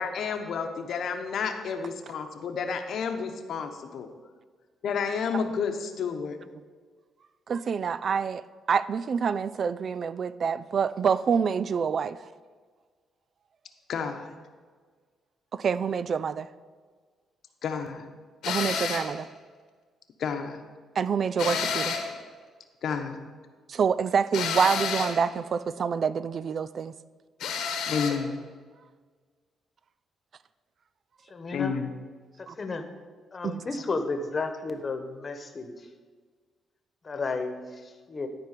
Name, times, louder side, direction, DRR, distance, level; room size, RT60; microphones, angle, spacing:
voice 1, 0.0-4.1 4.8-6.4 13.9-14.3 17.6-18.1 20.2-20.6 22.8-23.2 27.9-28.4 31.5-31.9, left 6 dB, 65° left, 1.0 m, -30 dB
voice 2, 7.5-8.4 8.7-12.3 15.5-16.5 18.5-19.3 21.0-22.0 23.7-26.9 32.5-32.6 33.4-33.6, right 6 dB, 50° right, 0.3 m, -27 dB
sound 1, 18.4-19.1 21.4-22.2 24.3-25.2 27.4-28.2, left 6 dB, 85° left, 1.4 m, -30 dB
voice 3, 31.3-31.8 32.4-32.9 33.3-35.9 37.0-38.3, left 3 dB, 35° left, 1.2 m, -33 dB
12.5 x 4.6 x 6.7 m
cardioid pair, 90°, 0 cm